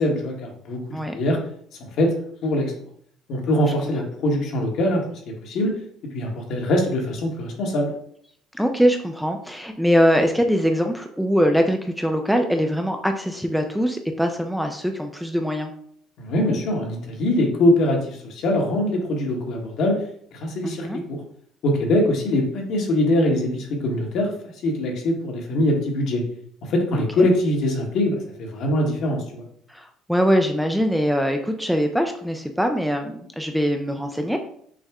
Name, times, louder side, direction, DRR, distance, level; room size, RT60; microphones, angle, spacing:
voice 1, 0.0-0.8 1.1-1.4 1.8-2.1 2.4-2.7 3.3-5.0 5.4-5.7 6.1-7.9 16.2-20.0 20.3-21.2 21.6-24.3 24.6-26.2 26.6-29.4, left 1 dB, 60° left, 1 dB, 1.3 m, -22 dB
voice 2, 8.5-15.7 20.6-21.0 26.9-27.3 29.7-34.4, equal, ahead, 5 dB, 0.4 m, -22 dB
6.3 x 2.1 x 3.6 m, 0.65 s
cardioid pair, 115°, 0 cm